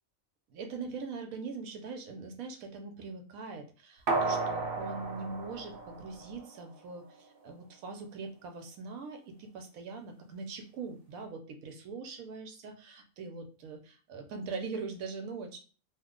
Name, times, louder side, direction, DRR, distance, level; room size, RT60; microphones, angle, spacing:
voice 1, 0.5-15.6, right 4 dB, 80° right, 5 dB, 1.1 m, -42 dB
sound 1, 4.1-6.6 7.0-7.1, right 3 dB, 55° right, 0.7 m, -33 dB
3.0 x 2.2 x 3.6 m, 0.39 s
omnidirectional pair, 1.5 m